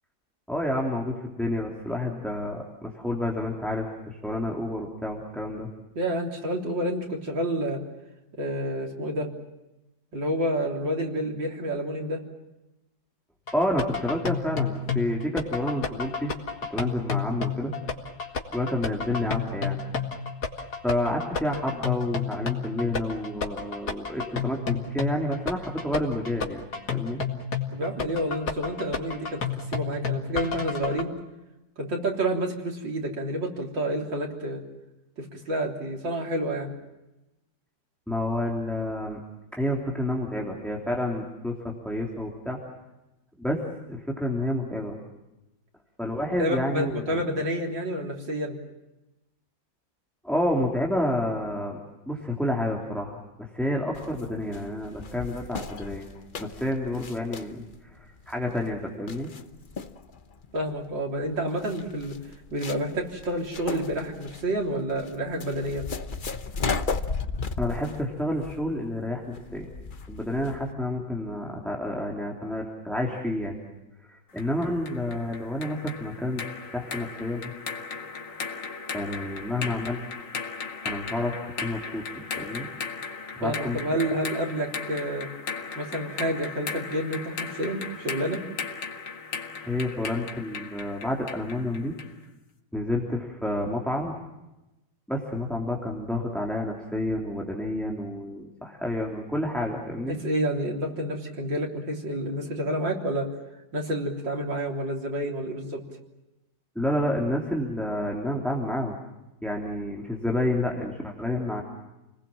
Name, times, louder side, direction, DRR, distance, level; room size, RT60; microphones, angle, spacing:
voice 1, 0.5-5.7 13.5-16.3 16.7-17.7 18.5-19.8 20.8-27.2 38.1-39.2 39.5-42.6 43.4-43.6 43.9-45.0 46.0-47.2 50.2-51.8 52.1-56.1 56.4-59.3 67.6-69.7 70.1-73.6 74.0-76.5 76.7-77.5 78.9-80.0 80.8-82.0 82.4-82.7 83.4-84.1 89.6-91.9 92.7-94.1 95.1-100.2 106.7-109.0 109.4-111.6, left 1 dB, ahead, -1 dB, 3.1 m, -29 dB
voice 2, 6.0-7.8 8.4-9.3 10.1-12.2 27.7-29.4 29.7-31.1 31.8-34.6 35.2-36.7 46.4-48.6 60.5-62.2 62.5-65.9 83.4-85.3 85.8-88.4 99.9-103.3 103.7-105.8, right 1 dB, 90° right, 0 dB, 4.2 m, -29 dB
sound 1, 13.5-31.0, left 6 dB, 60° left, 2.6 m, -31 dB
sound 2, 53.9-70.7, left 4 dB, 35° left, 0.9 m, -36 dB
sound 3, 74.4-92.2, left 5 dB, 80° left, 2.5 m, -37 dB
29.5 x 20.0 x 7.4 m, 0.98 s
omnidirectional pair, 2.0 m